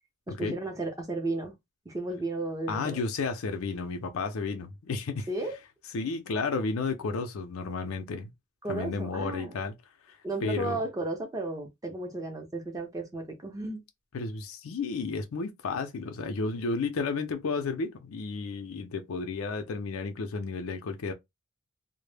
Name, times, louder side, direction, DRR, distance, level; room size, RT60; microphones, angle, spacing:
voice 1, 0.3-1.5 1.9-3.0 5.3-5.6 8.6-9.5 10.2-13.8, right 2 dB, 15° right, 0.5 m, -34 dB
voice 2, 2.7-5.3 5.9-8.3 8.7-9.7 10.1-10.8 14.1-21.1, left 4 dB, 90° left, 0.5 m, -32 dB
2.0 x 2.0 x 3.2 m
head